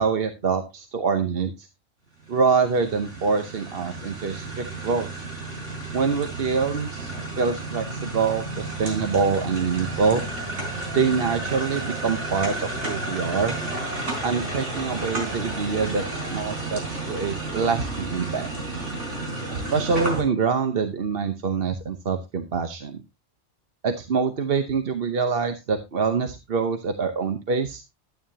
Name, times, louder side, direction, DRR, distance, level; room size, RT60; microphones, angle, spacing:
voice 1, 0.0-1.7 2.3-5.2 5.9-7.1 7.4-10.2 10.9-13.5 14.2-18.5 19.5-23.0 23.8-27.8, right 5 dB, 55° right, 7 dB, 1.1 m, -25 dB
sound 1, 2.2-20.2, right 2 dB, 85° right, 5.0 m, -32 dB
12.0 x 9.1 x 2.8 m, 0.24 s
omnidirectional pair, 1.2 m